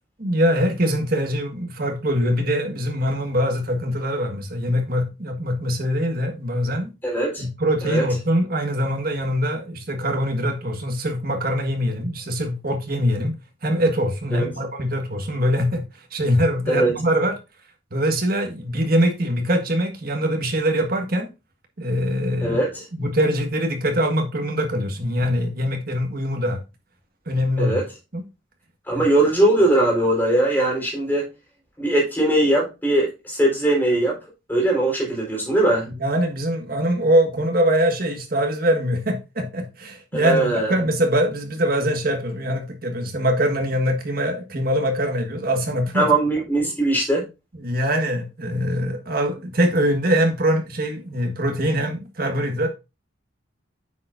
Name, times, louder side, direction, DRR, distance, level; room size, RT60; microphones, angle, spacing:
voice 1, 0.2-6.9 7.4-13.3 13.6-15.8 16.1-17.4 17.9-21.3 21.8-22.6 22.9-26.6 27.3-27.8 28.1-28.2 28.9-29.1 36.0-46.1 47.6-52.7, equal, 50° right, 1.6 m, -23 dB
voice 2, 7.0-7.4 7.8-8.0 14.3-14.5 16.7-16.9 22.4-22.8 27.6-27.8 28.9-31.2 31.8-34.2 34.5-35.9 40.1-40.8 45.9-47.2, right 1 dB, 10° left, 4.0 m, -20 dB
9.1 x 6.8 x 2.5 m
head